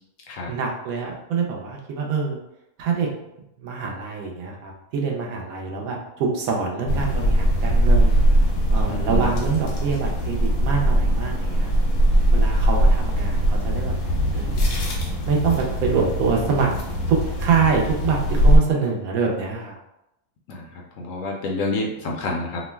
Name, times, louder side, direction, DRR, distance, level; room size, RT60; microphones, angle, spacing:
voice 1, 0.5-2.4 2.8-3.1 3.6-8.2 8.7-11.7 12.3-14.0 14.3-14.7 15.3-16.7 17.1-19.8, right 5 dB, 75° right, 0 dB, 1.0 m, -25 dB
sound 1, 6.9-18.6, right 1 dB, 85° left, 1.2 m, -20 dB
voice 2, 8.9-9.3 20.5-20.7 21.0-22.6, left 2 dB, 70° left, -1 dB, 0.9 m, -28 dB
2.9 x 2.1 x 3.2 m, 0.86 s
omnidirectional pair, 1.5 m